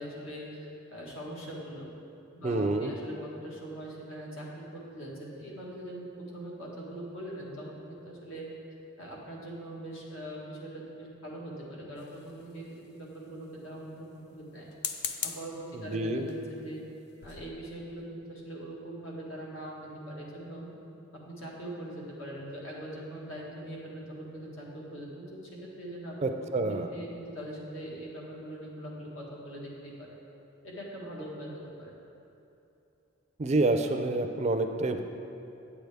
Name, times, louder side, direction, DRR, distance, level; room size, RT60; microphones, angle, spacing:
voice 1, 0.0-1.9 2.3-6.1 6.3-8.4 9.0-14.7 15.2-16.8 17.2-20.7 21.1-25.4 25.8-26.2 26.6-30.1 30.6-31.9, right 1 dB, 80° left, -4 dB, 1.6 m, -42 dB
voice 2, 2.4-2.9 15.7-16.2 26.2-26.9 33.4-35.0, right 2 dB, 30° right, 6 dB, 0.4 m, -28 dB
sound 1, 12.0-12.8 14.6-15.6 16.3-16.5 16.9-17.0 17.2-17.5, left 7 dB, 55° left, 0.4 m, -38 dB
8.5 x 7.8 x 3.4 m, 2.8 s
head